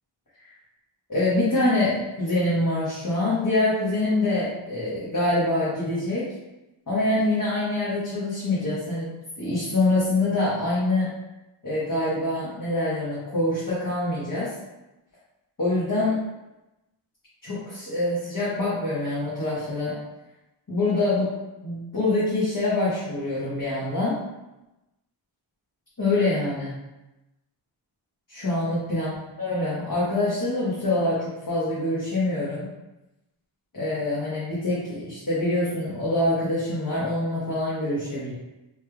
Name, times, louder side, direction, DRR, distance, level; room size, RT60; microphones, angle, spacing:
voice 1, 1.1-6.3 6.9-9.1 9.4-11.1 11.6-14.5 15.6-16.2 17.4-20.0 20.7-21.3 21.6-24.2 26.0-26.7 28.3-29.1 29.4-32.7 33.7-38.3, left 2 dB, 40° left, -9 dB, 1.1 m, -25 dB
3.2 x 3.2 x 2.3 m, 0.99 s
wide cardioid pair, 45°, 50 cm